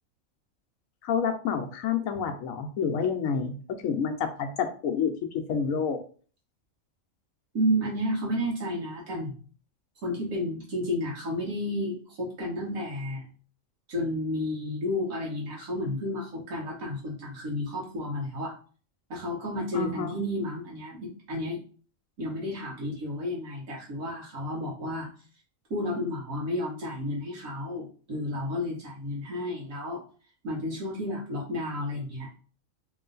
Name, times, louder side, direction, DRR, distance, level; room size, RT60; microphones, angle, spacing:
voice 1, 1.0-3.5 3.8-5.1 5.5-6.0 19.7-20.2, left 6 dB, 80° left, 6 dB, 1.1 m, -28 dB
voice 2, 7.5-9.4 10.0-13.3 13.9-18.5 19.1-21.6 22.2-25.1 25.7-30.0 30.4-32.3, left 1 dB, 85° right, -5 dB, 1.6 m, -31 dB
3.1 x 3.0 x 3.8 m, 0.41 s
omnidirectional pair, 1.4 m